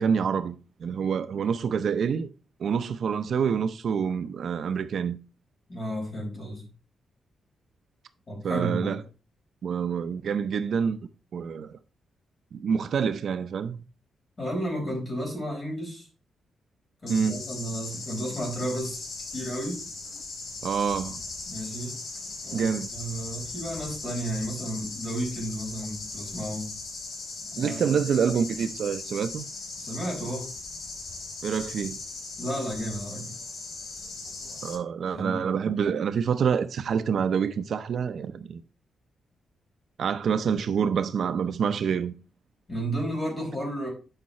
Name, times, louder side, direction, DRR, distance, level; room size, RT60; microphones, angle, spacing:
voice 1, 0.0-2.3 2.6-5.2 8.4-9.0 9.6-11.0 11.3-11.8 12.5-13.8 17.1-17.4 20.6-21.2 22.5-22.9 27.6-29.4 31.4-32.0 34.6-38.6 40.0-42.1, right 7 dB, 55° right, 0.5 m, -27 dB
voice 2, 5.7-6.6 8.3-9.0 14.4-16.1 17.0-19.0 19.3-19.8 21.5-22.0 22.4-26.7 27.5-28.0 29.8-30.5 32.4-33.3 35.1-35.4 42.7-43.9, right 1 dB, 25° left, 4.4 m, -32 dB
sound 1, 17.1-34.7, left 3 dB, 65° left, 4.5 m, -38 dB
9.0 x 5.6 x 4.2 m
wide cardioid pair, 170°, 0 cm